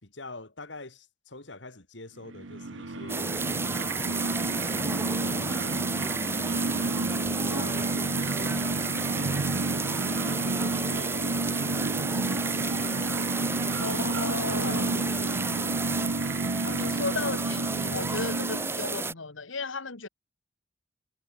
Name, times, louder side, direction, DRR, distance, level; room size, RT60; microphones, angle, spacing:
voice 1, 0.0-6.1 7.3-10.1 11.2-13.9 14.6-15.5, left 2 dB, 65° left, 2.8 m, -47 dB
sound 1, 2.2-18.9, right 3 dB, 75° right, 1.0 m, -31 dB
sound 2, 3.1-19.1, right 3 dB, 10° right, 1.0 m, -32 dB
sound 3, 3.7-4.9 5.6-6.2 6.5-7.4 8.0-8.6 9.2-9.4 10.6-11.5, right 1 dB, 30° right, 1.4 m, -47 dB
voice 2, 13.8-14.9 16.6-20.1, left 4 dB, 90° left, 2.0 m, -34 dB
head